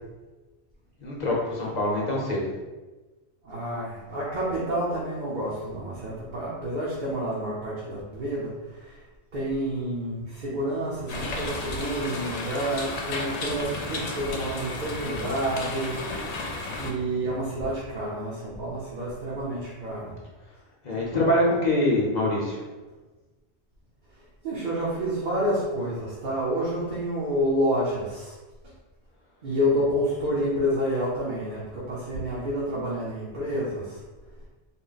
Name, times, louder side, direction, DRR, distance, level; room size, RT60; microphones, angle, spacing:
voice 1, 1.0-2.5 20.8-22.6, left 1 dB, 45° left, -4 dB, 0.9 m, -24 dB
voice 2, 3.4-9.0 9.3-16.0 16.3-16.4 16.8-20.2 24.4-28.3 29.4-34.0, equal, 50° right, -7 dB, 0.8 m, -29 dB
sound 1, 11.1-16.9, left 3 dB, 75° left, 0.9 m, -33 dB
3.8 x 2.1 x 3.9 m, 1.2 s
omnidirectional pair, 1.1 m